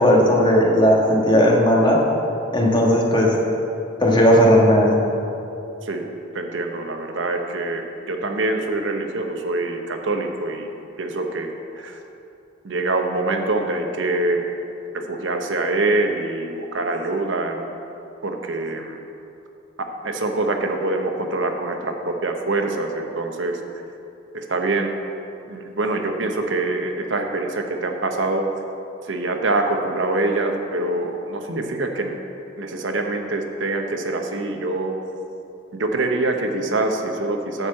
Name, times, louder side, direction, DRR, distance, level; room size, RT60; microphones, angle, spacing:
voice 1, 0.0-2.0 2.5-3.3 4.0-4.9, equal, 25° left, -2 dB, 1.4 m, -16 dB
voice 2, 6.3-10.7 11.0-12.0 12.6-14.6 14.9-17.6 18.2-19.0 20.0-23.6 24.3-24.9 25.5-28.5 29.0-32.2 32.6-35.0 35.7-37.7, right 2 dB, 70° right, 4 dB, 0.9 m, -25 dB
11.5 x 4.6 x 7.5 m, 2.8 s
head